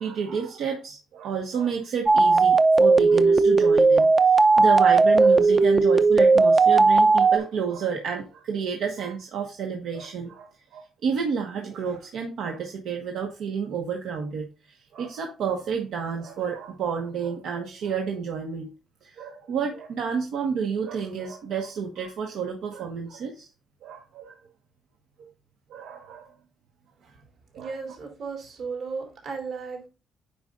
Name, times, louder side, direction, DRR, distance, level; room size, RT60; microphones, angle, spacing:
voice 1, 0.0-18.7 19.0-23.5 23.8-24.3 25.7-26.3 27.5-27.7, right 6 dB, 80° right, 1.3 m, -30 dB
sound 1, 2.1-7.4, right 3 dB, 20° right, 0.5 m, -17 dB
voice 2, 27.5-29.9, right 5 dB, 55° right, 3.7 m, -35 dB
9.1 x 5.3 x 2.5 m
cardioid pair, 150°, 0 cm